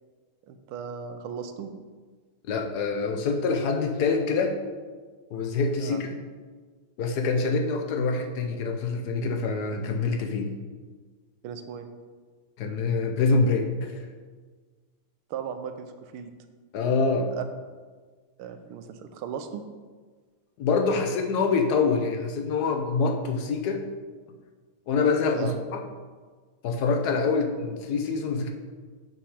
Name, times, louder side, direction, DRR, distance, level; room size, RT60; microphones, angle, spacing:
voice 1, 0.5-1.7 5.8-6.0 11.4-11.9 15.3-16.3 17.3-17.4 18.4-19.6 25.3-25.5, right 7 dB, 80° right, 8 dB, 1.5 m, -36 dB
voice 2, 2.5-4.6 5.3-6.1 7.0-10.5 12.6-14.1 16.7-17.3 20.6-23.8 24.9-25.5 26.6-28.5, left 4 dB, 65° left, 4 dB, 1.0 m, -25 dB
7.5 x 5.9 x 4.8 m, 1.5 s
omnidirectional pair, 2.4 m